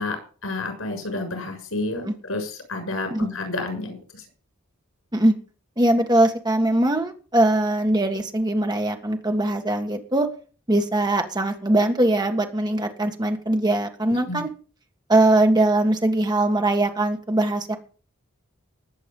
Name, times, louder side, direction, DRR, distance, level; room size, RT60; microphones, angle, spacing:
voice 1, 0.0-4.2 14.2-14.4, left 2 dB, 80° left, 5 dB, 6.8 m, -30 dB
voice 2, 5.8-10.3 10.7-14.5 15.1-17.8, right 1 dB, 20° right, 4 dB, 1.7 m, -21 dB
19.5 x 8.3 x 5.5 m, 0.39 s
head